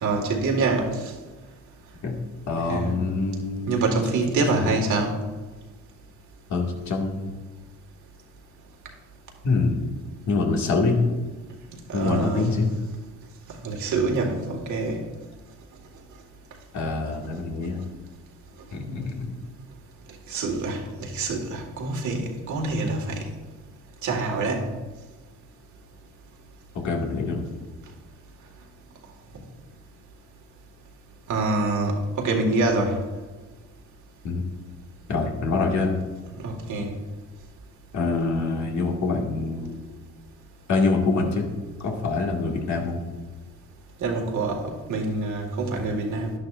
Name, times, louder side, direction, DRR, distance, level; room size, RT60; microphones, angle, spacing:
voice 1, 0.0-1.1 2.7-3.0 3.7-5.2 11.9-12.5 13.5-15.0 20.3-23.3 24.0-24.6 31.3-33.0 36.4-36.9 44.0-46.3, right 3 dB, 75° right, 2 dB, 2.0 m, -26 dB
voice 2, 2.5-3.8 4.5-4.7 6.5-7.3 9.4-9.9 10.3-11.0 11.9-12.7 16.7-17.8 18.7-19.4 26.7-27.5 34.2-34.4 35.1-36.0 37.9-39.8 40.7-41.5 41.8-43.0, left 3 dB, 70° left, 0 dB, 2.2 m, -25 dB
11.0 x 11.0 x 2.6 m, 1.3 s
cardioid pair, 90°, 30 cm